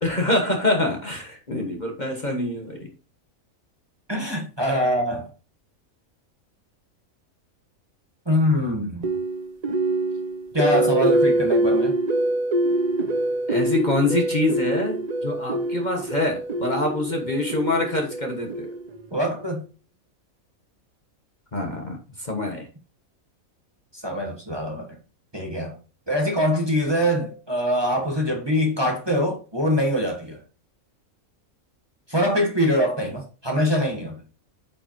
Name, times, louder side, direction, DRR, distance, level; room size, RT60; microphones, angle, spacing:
voice 1, 0.0-2.9 13.5-18.7 21.5-22.7, left 2 dB, 35° left, 1.3 m, -25 dB
voice 2, 4.1-5.3 8.2-9.1 10.5-11.9 19.1-19.6 23.9-24.9 25.3-25.8 26.1-30.4 32.1-34.2, equal, 20° right, 1.4 m, -23 dB
sound 1, 9.0-19.1, right 1 dB, 45° right, 0.6 m, -24 dB
8.6 x 5.0 x 3.0 m
omnidirectional pair, 1.5 m